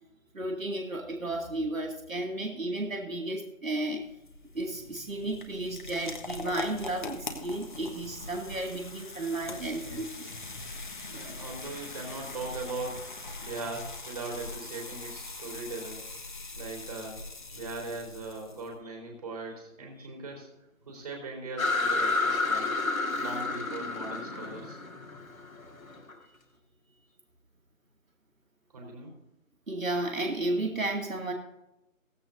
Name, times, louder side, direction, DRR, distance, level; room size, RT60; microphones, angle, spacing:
voice 1, 0.3-4.1 4.5-10.3 20.0-20.1 29.7-31.3, right 2 dB, 70° right, 1 dB, 2.4 m, -33 dB
sound 1, 3.9-18.7, left 2 dB, 35° left, 1.4 m, -42 dB
voice 2, 11.1-13.1 13.4-16.0 16.5-17.2 17.5-20.5 20.9-22.7 23.1-24.8 28.7-29.1, right 3 dB, 30° right, 0 dB, 4.0 m, -39 dB
sound 2, 21.6-26.1, left 3 dB, 75° left, 2.0 m, -30 dB
16.5 x 15.5 x 2.7 m, 0.90 s
figure-of-eight pair, 165°, 42 cm